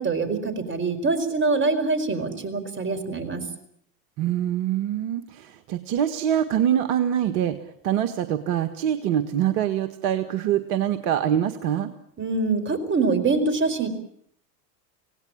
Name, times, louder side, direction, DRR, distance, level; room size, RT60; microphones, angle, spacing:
voice 1, 0.0-3.5 12.2-13.9, right 3 dB, 25° right, 8 dB, 4.8 m, -24 dB
voice 2, 4.2-7.6 7.8-11.9, right 10 dB, 60° right, 8 dB, 1.8 m, -24 dB
26.0 x 18.0 x 8.8 m, 0.70 s
hypercardioid pair, 85°, 50 cm